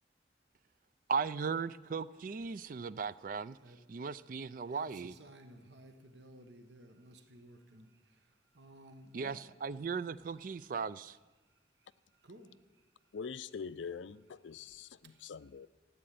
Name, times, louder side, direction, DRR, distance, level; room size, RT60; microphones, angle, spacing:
voice 1, 1.1-3.6 3.9-5.1 9.1-11.2, right 5 dB, 45° right, 0.4 m, -37 dB
voice 2, 4.7-9.5 12.1-12.8 15.0-15.2, right 1 dB, 70° right, 1.2 m, -56 dB
voice 3, 13.1-15.7, left 6 dB, 85° left, 0.5 m, -44 dB
14.0 x 8.7 x 9.2 m
head